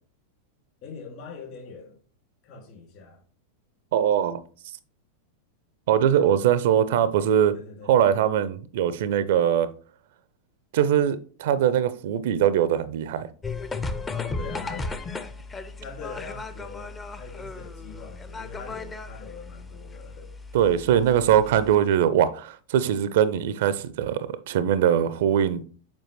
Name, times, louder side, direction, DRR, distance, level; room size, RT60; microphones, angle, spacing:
voice 1, 0.8-2.0 2.4-3.2 7.5-7.9 14.1-14.9 15.8-20.3, left 4 dB, 45° left, 2.2 m, -42 dB
voice 2, 3.9-4.4 5.9-7.6 7.9-9.7 10.7-13.3 20.5-25.6, right 9 dB, 55° right, 0.4 m, -22 dB
sound 1, 13.4-21.8, left 3 dB, 15° left, 0.5 m, -36 dB
7.4 x 4.5 x 3.0 m
figure-of-eight pair, 90°, 0 cm